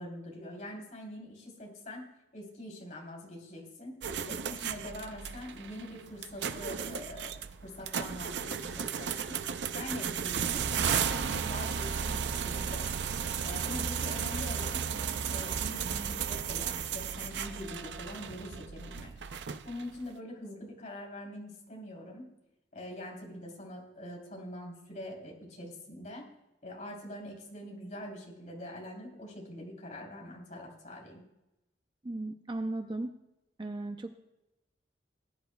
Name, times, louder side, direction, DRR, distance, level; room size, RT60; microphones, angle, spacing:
voice 1, 0.0-2.1 2.3-4.0 4.3-9.4 9.7-12.9 13.4-19.1 19.6-22.3 22.7-26.2 26.6-31.2, left 1 dB, 45° left, -1 dB, 3.3 m, -44 dB
sound 1, 4.0-20.0, right 7 dB, 70° right, 0.5 m, -34 dB
voice 2, 32.0-33.1 33.6-34.2, right 2 dB, 25° right, 7 dB, 0.5 m, -36 dB
19.0 x 10.5 x 2.3 m, 0.92 s
head